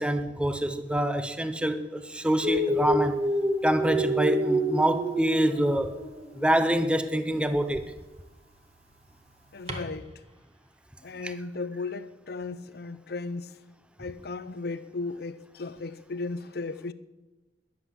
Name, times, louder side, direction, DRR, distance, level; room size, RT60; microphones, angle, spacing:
voice 1, 0.0-3.2 3.6-6.0 6.3-7.8 11.2-11.3, right 1 dB, 5° right, 0.8 m, -26 dB
Dog, 2.4-6.4 7.4-7.6 9.7-9.8, right 1 dB, 35° right, 1.8 m, -28 dB
voice 2, 9.5-10.1 11.0-13.5 14.0-16.9, left 3 dB, 60° left, 0.7 m, -35 dB
20.5 x 7.7 x 8.3 m
head